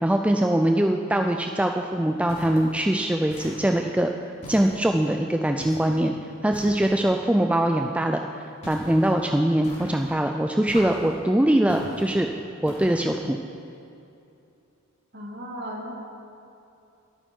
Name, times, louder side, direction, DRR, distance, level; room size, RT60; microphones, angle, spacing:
voice 1, 0.0-4.1 4.5-6.2 6.4-12.3 12.6-13.4, right 1 dB, 5° right, 3 dB, 0.4 m, -22 dB
sound 1, 2.3-2.8 3.3-3.9 4.4-5.1 5.6-6.0 6.5-7.1 8.6-9.1 9.6-10.2 10.7-11.2 11.7-12.2 12.7-13.2, equal, 30° left, 3.3 m, -41 dB
voice 2, 15.1-15.9, equal, 50° right, -1 dB, 2.4 m, -35 dB
22.5 x 9.1 x 4.5 m, 2.7 s
head